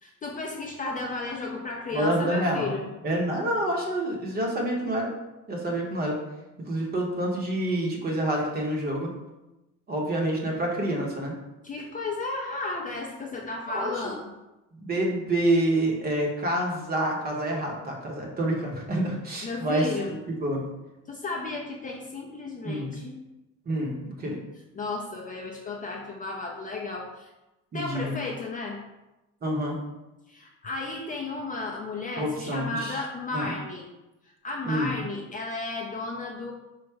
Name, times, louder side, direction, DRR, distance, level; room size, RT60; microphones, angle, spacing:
voice 1, 0.0-2.9 11.6-14.3 19.4-20.2 21.1-23.2 24.7-27.3 27.7-28.8 30.3-33.8 34.4-36.5, left 3 dB, 25° left, -1 dB, 0.4 m, -34 dB
voice 2, 1.9-2.7 3.0-5.1 5.5-6.2 6.6-9.1 9.9-11.3 13.7-14.1 14.8-20.6 22.6-22.9 23.7-24.4 27.7-28.2 29.4-29.8 32.2-33.0 33.3-33.5 34.6-34.9, right 1 dB, 30° right, -1 dB, 0.8 m, -27 dB
4.7 x 2.0 x 4.5 m, 0.99 s
cardioid pair, 145°, 32 cm